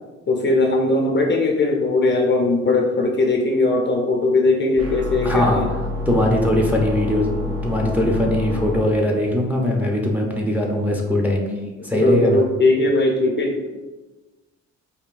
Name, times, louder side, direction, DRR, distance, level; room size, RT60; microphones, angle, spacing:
voice 1, 0.3-5.7 11.5-11.7 11.9-13.6, left 2 dB, 35° left, 1 dB, 0.6 m, -19 dB
sound 1, 4.8-8.8, left 3 dB, 50° right, 1.0 m, -28 dB
voice 2, 5.2-5.8 6.1-11.5 11.8-12.4, left 1 dB, 5° right, -1 dB, 0.6 m, -20 dB
5.0 x 2.6 x 2.5 m, 1.2 s
cardioid pair, 90°, 30 cm